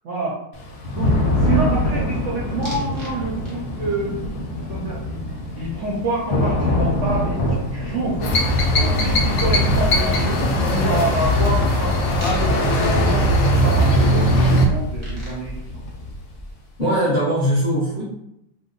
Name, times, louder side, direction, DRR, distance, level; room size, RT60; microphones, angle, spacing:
voice 1, 0.0-0.4 0.8-4.1 4.6-15.6, right 2 dB, 65° right, -4 dB, 0.8 m, -28 dB
Thunder / Rain, 0.5-16.3, left 1 dB, 70° left, 1.1 m, -26 dB
sound 1, 2.7-3.1 3.5-3.9 6.4-6.5 6.7-16.8, equal, 25° right, 0.6 m, -32 dB
sound 2, 8.2-14.7, equal, 85° left, 0.6 m, -19 dB
voice 2, 16.8-18.0, equal, 45° left, -8 dB, 0.6 m, -20 dB
2.9 x 2.1 x 3.7 m, 0.80 s
omnidirectional pair, 1.9 m